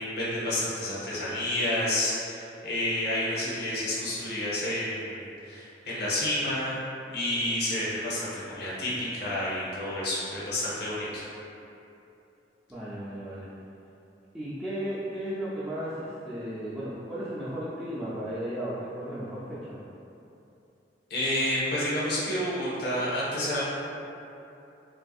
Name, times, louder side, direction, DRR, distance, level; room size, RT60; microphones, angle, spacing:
voice 1, 0.0-6.8 7.1-11.2 21.1-23.7, left 1 dB, 65° left, -8 dB, 0.7 m, -30 dB
voice 2, 12.7-13.5 14.3-19.8, equal, 10° right, -11 dB, 0.3 m, -35 dB
3.3 x 2.6 x 2.3 m, 2.8 s
head